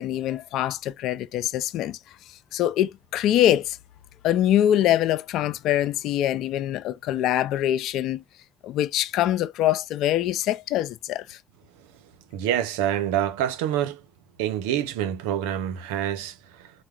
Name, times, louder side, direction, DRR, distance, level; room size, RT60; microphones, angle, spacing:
voice 1, 0.0-2.0 2.3-3.8 4.2-8.2 8.6-11.4, left 12 dB, 70° left, 0.4 m, -24 dB
voice 2, 12.3-14.0 14.4-16.7, right 11 dB, 85° right, 0.5 m, -26 dB
4.5 x 2.1 x 3.2 m
hypercardioid pair, 60°, 0 cm